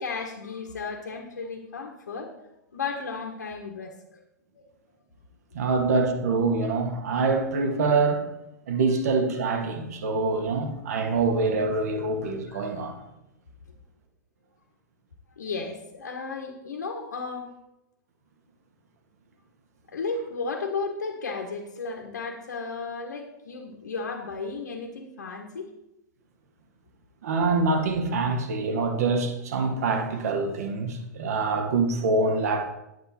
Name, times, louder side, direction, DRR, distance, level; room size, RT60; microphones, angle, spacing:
voice 1, 0.0-2.3 2.7-4.2 4.5-4.7 12.5-12.6 15.4-17.5 19.9-25.7, left 4 dB, 70° left, 1.6 m, -34 dB
voice 2, 5.5-8.2 8.7-12.9 27.2-32.7, right 3 dB, 60° right, 1.9 m, -25 dB
11.0 x 9.5 x 4.4 m
figure-of-eight pair, 100°, 10 cm